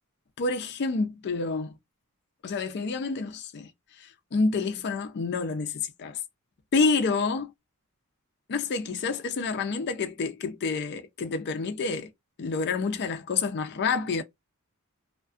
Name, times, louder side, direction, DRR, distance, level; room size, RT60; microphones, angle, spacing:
voice 1, 0.4-1.7 2.4-3.7 4.0-6.2 6.7-7.5 8.5-12.1 12.4-14.2, left 4 dB, 50° left, 0.4 m, -28 dB
2.3 x 2.1 x 2.4 m
head